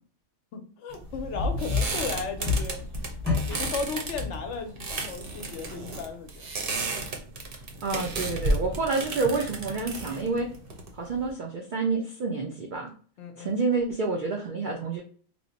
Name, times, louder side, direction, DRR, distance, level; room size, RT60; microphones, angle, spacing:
voice 1, 0.5-2.8 3.5-6.5 7.1-7.2 13.2-13.6, left 5 dB, 65° left, 6 dB, 0.8 m, -35 dB
sound 1, 0.9-11.3, right 2 dB, 50° right, 0.7 m, -33 dB
sound 2, 1.1-4.6, left 4 dB, 5° left, 1.0 m, -30 dB
voice 2, 7.8-10.5 11.0-12.9 13.4-15.0, right 3 dB, 80° right, 0 dB, 0.4 m, -28 dB
3.0 x 2.0 x 3.9 m, 0.43 s
omnidirectional pair, 1.5 m